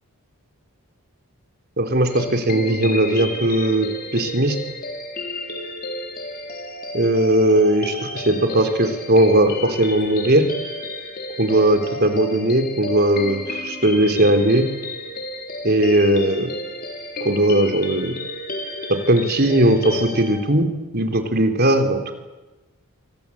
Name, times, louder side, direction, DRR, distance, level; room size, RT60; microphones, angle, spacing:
voice 1, 1.8-4.6 6.9-10.5 11.4-14.7 15.6-16.5 17.2-18.1 18.9-20.7 20.9-22.1, right 1 dB, 45° right, 6 dB, 3.5 m, -18 dB
sound 1, 2.1-20.4, left 1 dB, 40° left, 4.0 m, -32 dB
28.0 x 24.0 x 8.7 m, 1.1 s
head